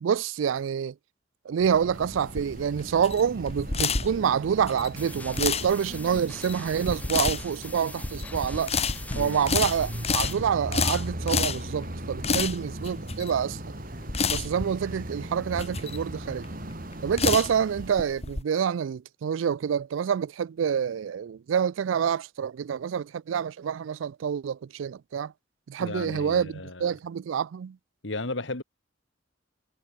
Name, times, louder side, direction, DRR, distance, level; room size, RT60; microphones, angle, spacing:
voice 1, 0.0-0.9 1.5-8.7 9.1-13.6 14.2-16.5 17.0-25.3 25.7-27.8, right 7 dB, 80° right, 0.4 m, -27 dB
sound 1, 1.6-17.9, right 1 dB, 45° right, 4.2 m, -39 dB
sound 2, 1.9-18.4, left 5 dB, 35° left, 1.5 m, -30 dB
sound 3, 5.0-10.3, left 2 dB, 10° left, 5.9 m, -44 dB
voice 2, 9.1-9.5 12.3-12.5 25.8-26.9 28.0-28.6, left 2 dB, 70° left, 2.1 m, -35 dB
head